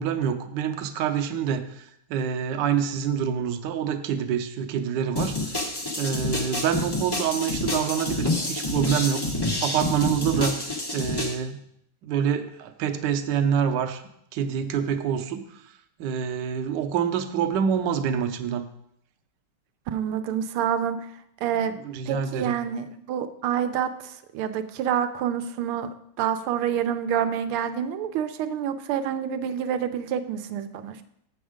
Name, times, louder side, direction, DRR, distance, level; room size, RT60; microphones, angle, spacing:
voice 1, 0.0-5.6 6.0-11.6 12.0-14.0 14.3-15.4 16.0-18.6 21.7-22.6, right 8 dB, 70° right, 6 dB, 1.2 m, -27 dB
sound 1, 5.2-11.3, left 2 dB, 35° left, 0.3 m, -28 dB
voice 2, 19.9-21.1 21.4-21.8 22.1-25.9 26.2-31.0, right 9 dB, 85° right, 9 dB, 1.5 m, -27 dB
7.3 x 7.1 x 4.9 m, 0.74 s
omnidirectional pair, 2.3 m